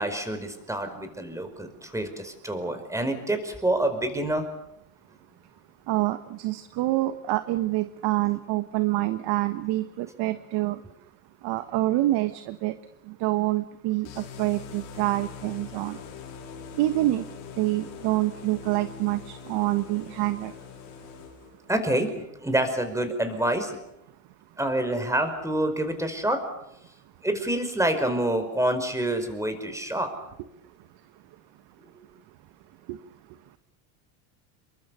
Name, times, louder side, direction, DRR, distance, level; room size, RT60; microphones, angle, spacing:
voice 1, 0.0-4.4 21.7-22.1 22.4-23.8 24.6-26.4 27.2-30.1, right 1 dB, 5° right, 8 dB, 4.9 m, -27 dB
voice 2, 5.9-10.8 11.4-12.7 13.1-16.0 16.8-17.2 17.6-20.5 32.9-33.0, right 17 dB, 60° right, 10 dB, 1.5 m, -26 dB
sound 1, 14.0-21.7, left 6 dB, 75° left, 5.8 m, -43 dB
27.5 x 23.5 x 7.1 m, 0.82 s
supercardioid pair, 115°, 46 cm